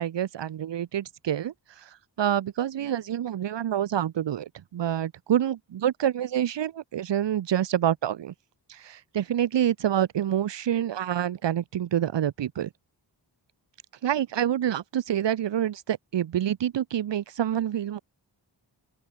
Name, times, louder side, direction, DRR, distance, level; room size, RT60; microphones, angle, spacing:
voice 1, 0.0-1.5 2.2-8.3 8.7-12.7 14.0-18.0, right 10 dB, 85° right, 0.9 m, -27 dB
open air
wide cardioid pair, 100°, 42 cm